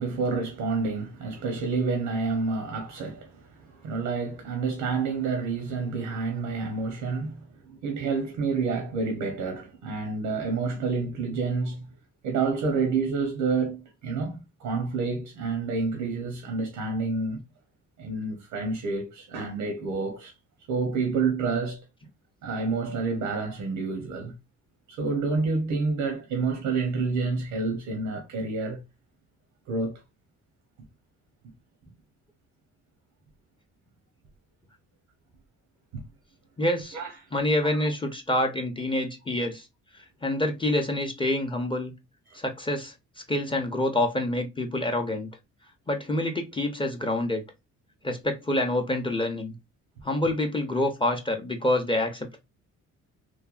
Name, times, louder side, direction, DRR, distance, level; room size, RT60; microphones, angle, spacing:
voice 1, 0.0-11.9 12.2-17.4 18.0-20.3 20.7-21.8 22.4-24.3 24.9-28.8 29.7-30.0 35.9-36.0 36.9-37.1 37.7-37.8 42.3-42.4, right 4 dB, 90° right, 0.8 m, -29 dB
voice 2, 36.6-37.0 37.3-39.7 40.2-41.9 42.3-42.9 43.3-45.3 45.9-47.4 48.0-49.6 50.0-52.4, left 1 dB, 15° left, 0.6 m, -27 dB
3.2 x 2.2 x 2.3 m
cardioid pair, 90°, 30 cm